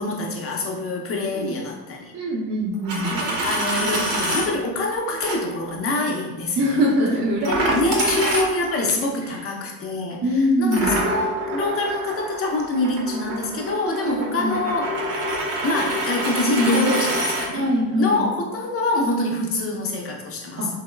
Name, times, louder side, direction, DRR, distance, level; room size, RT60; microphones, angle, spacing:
voice 1, 0.0-2.1 3.1-6.9 7.7-14.9 15.6-17.7 18.0-20.7, left 2 dB, 30° left, 0 dB, 0.6 m, -25 dB
voice 2, 2.1-3.1 6.6-7.8 8.1-8.2 10.2-10.9 14.0-14.6 17.5-18.3 20.6-20.7, equal, 35° right, -6 dB, 0.5 m, -23 dB
Coin (dropping), 2.7-4.5 5.2-5.4 7.4-8.9 10.7-17.5, right 1 dB, 60° right, 0.8 m, -26 dB
2.8 x 2.0 x 2.2 m, 1.1 s
hypercardioid pair, 70°, 46 cm